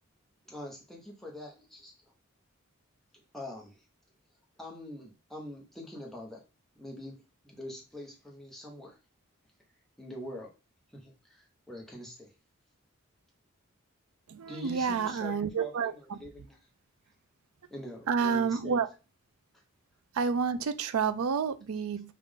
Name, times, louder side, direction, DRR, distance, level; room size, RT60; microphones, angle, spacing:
voice 1, 0.4-1.9 3.1-3.8 4.6-6.4 6.8-7.2 7.4-9.0 10.0-10.5 10.9-12.3 14.5-16.6 17.7-18.8, equal, ahead, 1.0 m, -44 dB
voice 2, 14.3-16.2 18.1-18.9 20.1-22.1, right 6 dB, 90° right, 0.4 m, -29 dB
5.4 x 2.5 x 3.6 m
head